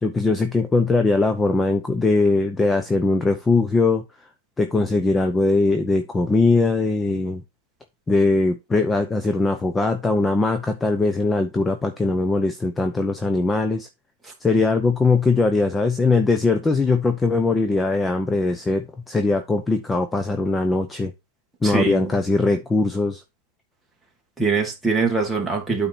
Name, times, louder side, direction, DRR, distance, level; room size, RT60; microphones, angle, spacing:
voice 1, 0.0-4.0 4.6-7.4 8.1-13.9 14.4-21.1 21.6-23.2, left 3 dB, 10° left, 0.7 m, -20 dB
voice 2, 21.6-22.1 24.4-25.9, right 4 dB, 5° right, 2.0 m, -22 dB
8.9 x 4.0 x 4.3 m
supercardioid pair, 145°, 0 cm